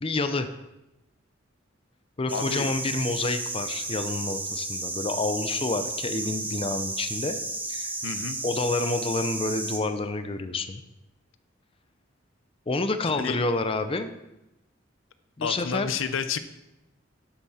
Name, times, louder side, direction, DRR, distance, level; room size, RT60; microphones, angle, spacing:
voice 1, 0.0-0.5 2.2-7.4 7.7-7.9 8.4-10.8 12.7-14.1 15.4-15.9, left 3 dB, 30° left, 10 dB, 0.6 m, -28 dB
voice 2, 2.3-2.7 8.0-8.4 13.1-13.4 15.4-16.4, left 6 dB, 90° left, 11 dB, 0.7 m, -30 dB
sound 1, 2.3-9.8, right 2 dB, 10° right, 0.9 m, -33 dB
12.0 x 8.3 x 4.2 m, 0.93 s
head